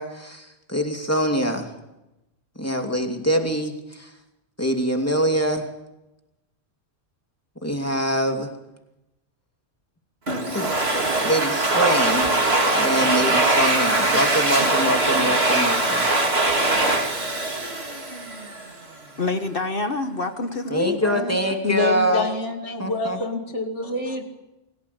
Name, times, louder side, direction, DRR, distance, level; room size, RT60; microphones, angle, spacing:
voice 1, 0.0-1.7 2.6-4.1 4.6-5.7 7.6-8.5 10.5-10.8 11.2-12.3 12.7-16.1 20.7-22.3 22.8-23.2, equal, 10° left, 3 dB, 2.8 m, -24 dB
Domestic sounds home sounds, 10.3-18.7, right 2 dB, 55° right, 3.2 m, -21 dB
voice 2, 19.2-21.4 22.7-22.8, left 3 dB, 50° left, 8 dB, 1.5 m, -27 dB
voice 3, 21.6-24.2, left 3 dB, 70° left, 4 dB, 2.9 m, -26 dB
28.0 x 17.5 x 8.6 m, 0.96 s
omnidirectional pair, 1.2 m